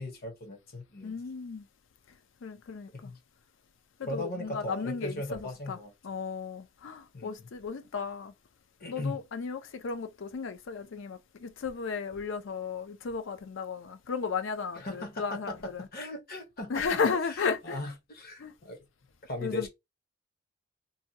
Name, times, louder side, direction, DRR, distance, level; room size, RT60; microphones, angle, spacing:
voice 1, 0.0-1.1 2.9-3.2 4.0-5.9 7.1-7.5 8.8-9.2 14.8-17.0 17.6-18.8 19.2-19.7, left 1 dB, 50° left, 0.9 m, -38 dB
voice 2, 1.0-1.7 2.1-3.1 4.0-5.8 6.0-8.3 8.9-15.9 16.7-17.8 18.4-18.5 19.4-19.7, left 5 dB, 70° left, 0.5 m, -34 dB
2.8 x 2.2 x 2.7 m
head